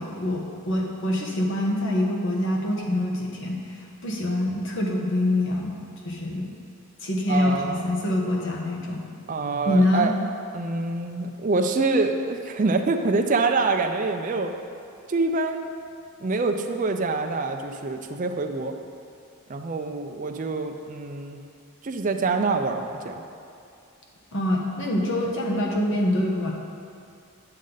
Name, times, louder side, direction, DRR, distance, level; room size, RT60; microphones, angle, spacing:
voice 1, 0.0-5.8 6.0-6.5 7.0-9.0 9.7-10.1 24.3-26.5, left 1 dB, 55° left, -1 dB, 1.1 m, -25 dB
voice 2, 7.3-7.8 9.3-10.1 10.5-14.5 15.1-15.7 16.2-18.7 19.5-21.4 21.8-23.2, right 3 dB, 35° right, 5 dB, 0.4 m, -25 dB
9.9 x 6.4 x 3.9 m, 2.5 s
head